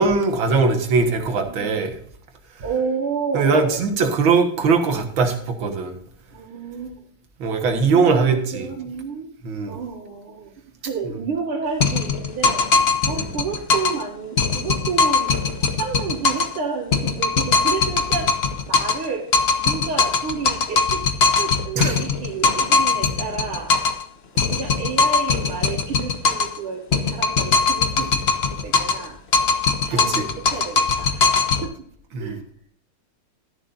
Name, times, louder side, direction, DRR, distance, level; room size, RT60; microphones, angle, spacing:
voice 1, 0.0-2.0 3.3-6.0 7.4-8.7 9.4-9.8 13.1-13.3 21.8-22.0 29.9-30.3 32.1-32.4, right 4 dB, 70° right, 4 dB, 2.2 m, -20 dB
voice 2, 1.5-1.8 2.6-3.8 6.3-7.0 7.9-9.3 9.6-10.5 10.8-12.6 13.0-15.3 15.6-18.3 18.7-19.3 19.6-23.7 24.4-29.2 29.8-31.2 31.6-31.7 32.2-32.4, right 5 dB, 85° right, -4 dB, 2.6 m, -30 dB
sound 1, 11.8-14.0 14.4-16.6 16.9-19.1 19.3-24.0 24.4-26.6 26.9-29.1 29.3-31.6, left 4 dB, 50° left, 0.7 m, -20 dB
12.5 x 11.0 x 2.6 m, 0.63 s
omnidirectional pair, 2.3 m